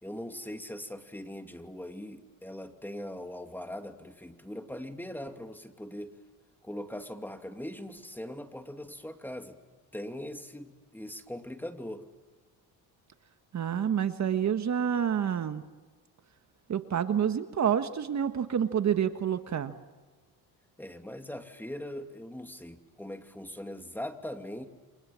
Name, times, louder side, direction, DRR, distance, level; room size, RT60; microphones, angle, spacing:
voice 1, 0.0-6.1 6.6-9.6 9.9-12.1 20.8-24.7, left 1 dB, 5° left, 6 dB, 2.7 m, -41 dB
voice 2, 13.5-15.6 16.7-19.7, right 8 dB, 45° right, 9 dB, 1.5 m, -28 dB
30.0 x 25.5 x 7.6 m, 1.4 s
cardioid pair, 95°, 39 cm